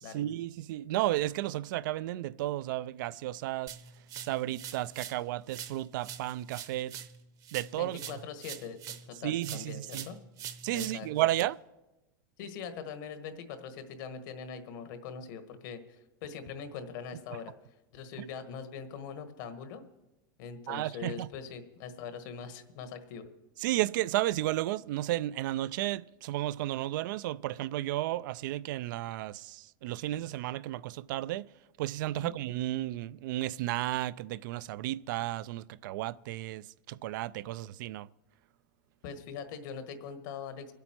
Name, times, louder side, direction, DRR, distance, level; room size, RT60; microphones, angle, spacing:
voice 1, 0.1-3.8 4.2-6.9 7.5-8.0 9.2-10.1 10.6-11.6 20.7-21.3 23.6-31.5 31.8-38.1, right 15 dB, 75° right, 0.4 m, -33 dB
sound 1, 3.7-5.2 5.5-9.1 9.4-11.4, right 9 dB, 35° right, 0.8 m, -44 dB
voice 2, 7.8-8.8 9.1-10.2 10.7-11.1 12.4-17.5 17.9-19.8 20.4-23.3 32.2-32.3 39.0-40.7, left 6 dB, 65° left, 1.4 m, -42 dB
23.5 x 8.3 x 4.5 m
supercardioid pair, 145°, 11 cm